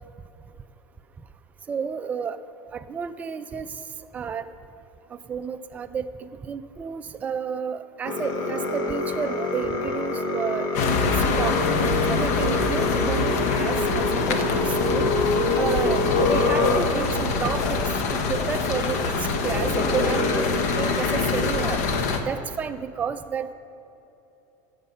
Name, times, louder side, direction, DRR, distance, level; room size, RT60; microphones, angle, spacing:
voice 1, 1.7-2.4 2.7-3.8 4.1-4.5 5.1-11.7 12.0-15.3 15.5-23.5, right 6 dB, 15° right, 9 dB, 0.4 m, -31 dB
sound 1, 8.1-17.2 17.6-17.8 18.8-18.9 19.4-21.4, left 2 dB, 45° left, 1.2 m, -26 dB
sound 2, 10.7-22.2, left 4 dB, 80° left, 1.1 m, -25 dB
15.0 x 6.5 x 5.6 m, 3.0 s
cardioid pair, 165°, 9 cm